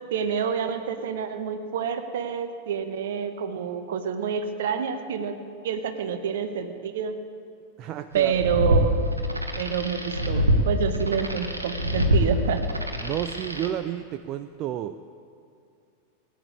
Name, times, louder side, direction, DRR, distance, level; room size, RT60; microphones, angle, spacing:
voice 1, 0.1-5.4 5.6-7.2 8.1-9.0 9.6-12.6, right 7 dB, 60° right, 9 dB, 1.2 m, -28 dB
voice 2, 7.8-8.4 13.0-15.0, right 11 dB, 35° right, 11 dB, 0.5 m, -31 dB
sound 1, 8.2-13.7, equal, 80° right, 1.3 m, -25 dB
17.5 x 9.4 x 8.3 m, 2.4 s
figure-of-eight pair, 90°, 0 cm